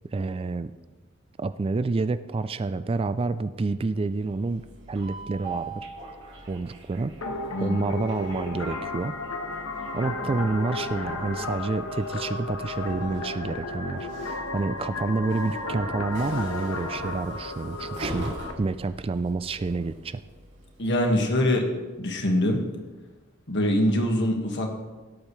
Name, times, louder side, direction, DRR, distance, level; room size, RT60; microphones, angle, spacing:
voice 1, 0.1-0.7 1.4-4.6 4.9-5.9 6.5-7.1 7.6-9.2 9.9-20.2, right 3 dB, 25° right, 13 dB, 0.3 m, -28 dB
Train, 4.0-21.2, right 2 dB, 60° right, 2.5 m, -43 dB
sound 1, 7.2-18.5, left 3 dB, 85° left, 1.2 m, -33 dB
voice 2, 7.5-7.8 20.8-21.7 22.0-22.6 23.5-24.7, left 1 dB, 60° left, 2 dB, 1.7 m, -23 dB
17.0 x 8.6 x 3.2 m, 1.2 s
head